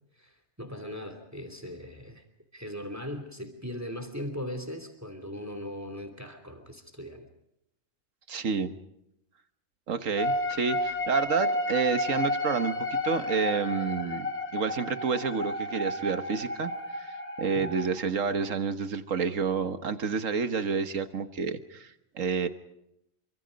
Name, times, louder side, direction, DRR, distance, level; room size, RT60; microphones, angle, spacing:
voice 1, 0.2-2.2 2.5-7.2 17.6-17.7, left 1 dB, 10° right, 7 dB, 2.9 m, -39 dB
voice 2, 8.3-8.7 9.9-14.3 14.5-22.5, right 5 dB, 70° right, 9 dB, 1.7 m, -29 dB
sound 1, 10.2-17.9, left 1 dB, 30° left, 3.2 m, -31 dB
27.5 x 25.0 x 5.2 m, 0.82 s
omnidirectional pair, 1.4 m